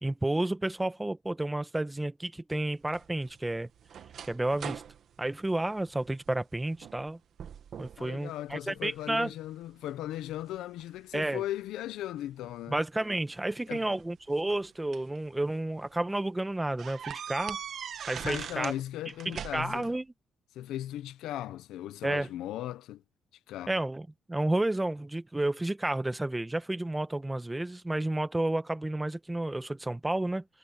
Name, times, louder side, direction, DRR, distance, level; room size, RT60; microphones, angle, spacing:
voice 1, 0.0-3.7 4.2-4.8 5.2-7.2 7.8-9.3 11.1-11.4 12.7-17.6 18.1-18.7 19.2-20.1 22.0-22.3 23.7-30.4, right 1 dB, 10° right, 1.5 m, -31 dB
sound 1, 2.9-6.3 6.7-7.1 7.4-8.1 8.5-9.2 9.8-11.3 12.4-12.5 13.8-15.2 15.7-15.8 16.1-16.2 16.8-18.8 19.1-19.9, right 8 dB, 65° right, 1.8 m, -42 dB
voice 2, 8.0-12.7 13.7-13.8 18.2-19.9 20.5-23.0 23.5-23.7, left 13 dB, 85° left, 0.8 m, -37 dB
cardioid pair, 90°, 0 cm